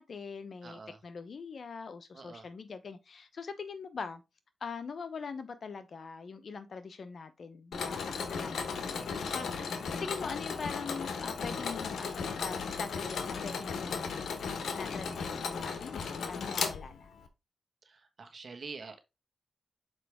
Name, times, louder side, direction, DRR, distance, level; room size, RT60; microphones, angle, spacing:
voice 1, 0.0-4.2 4.6-14.4 14.8-17.1, left 5 dB, 65° left, 0.9 m, -42 dB
voice 2, 0.6-1.0 2.1-2.5 15.1-15.8 17.8-19.0, right 4 dB, 55° right, 1.5 m, -47 dB
Mechanisms, 7.7-17.3, left 5 dB, 85° left, 1.0 m, -36 dB
6.6 x 4.7 x 3.5 m
cardioid pair, 65°, 0 cm